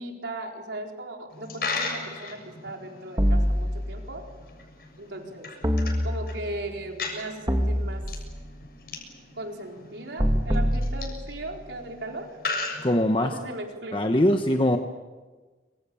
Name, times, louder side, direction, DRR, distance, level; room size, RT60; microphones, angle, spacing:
voice 1, 0.0-4.3 5.0-5.5 6.0-8.0 9.4-12.4 13.2-14.1, right 1 dB, 80° right, 1 dB, 4.5 m, -37 dB
Coin (dropping), 1.3-13.6, left 3 dB, 55° left, 7.2 m, -38 dB
sound 1, 3.2-4.2 5.6-6.6 7.5-8.5 10.2-11.6, equal, 20° right, 2.2 m, -25 dB
voice 2, 12.8-13.3 13.9-14.8, left 1 dB, 25° left, 5 dB, 1.2 m, -22 dB
26.5 x 26.0 x 7.2 m, 1.3 s
head